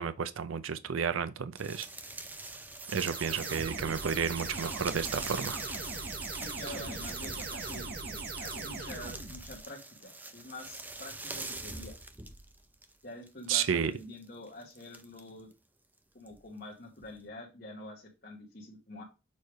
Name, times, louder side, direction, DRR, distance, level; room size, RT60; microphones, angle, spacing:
voice 1, 0.0-1.9 2.9-5.6 13.5-13.9, right 7 dB, 85° right, 0.5 m, -32 dB
sound 1, 1.6-12.9 13.3-15.5 16.3-16.4 17.0-17.2, right 2 dB, 10° right, 0.5 m, -43 dB
sound 2, 2.8-9.6, right 3 dB, 50° right, 1.1 m, -40 dB
voice 2, 6.3-12.0 13.0-15.5 16.1-19.0, left 1 dB, 50° left, 1.3 m, -46 dB
6.7 x 3.2 x 4.7 m
head